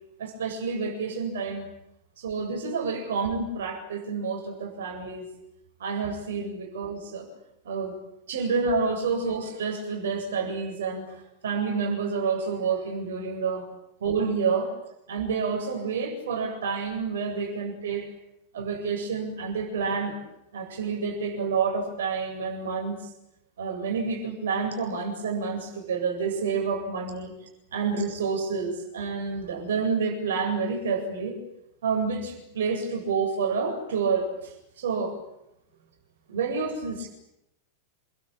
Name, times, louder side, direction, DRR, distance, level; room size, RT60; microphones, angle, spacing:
voice 1, 0.2-1.7 2.2-5.2 5.8-7.3 7.6-7.9 8.3-11.2 11.4-13.7 14.0-14.7 15.1-18.0 18.5-20.2 20.5-23.1 23.6-27.3 27.7-31.4 31.8-35.1 36.3-37.1, right 5 dB, 65° right, 3 dB, 7.9 m, -29 dB
29.0 x 23.5 x 8.8 m, 0.82 s
figure-of-eight pair, 90°, 0 cm